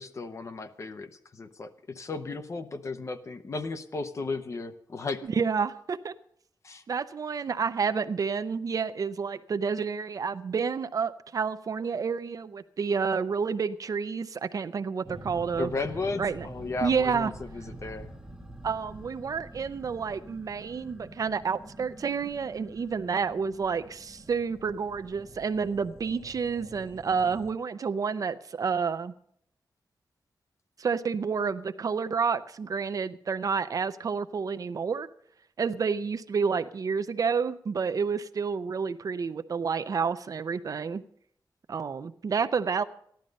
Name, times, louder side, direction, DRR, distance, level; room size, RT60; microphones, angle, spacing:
voice 1, 0.0-5.2 6.6-6.8 15.6-18.1, left 3 dB, 40° left, 9 dB, 0.9 m, -35 dB
voice 2, 5.2-6.1 6.9-15.7 16.2-16.5 16.8-17.3 18.6-29.1 30.8-35.1 35.6-41.0 41.7-42.8, right 5 dB, 50° right, 12 dB, 0.6 m, -29 dB
sound 1, 15.0-27.5, right 2 dB, 5° right, 1.2 m, -46 dB
14.0 x 11.5 x 5.2 m, 0.66 s
wide cardioid pair, 175°, 8 cm